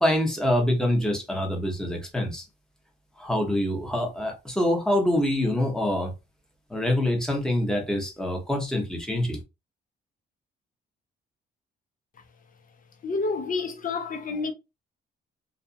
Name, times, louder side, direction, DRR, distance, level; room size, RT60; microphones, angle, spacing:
voice 1, 0.0-2.4 3.2-6.1 6.7-9.4, left 1 dB, 5° left, 1.0 m, -25 dB
voice 2, 13.0-14.5, left 4 dB, 45° left, 0.7 m, -29 dB
2.6 x 2.3 x 2.6 m
cardioid pair, 90°, 20 cm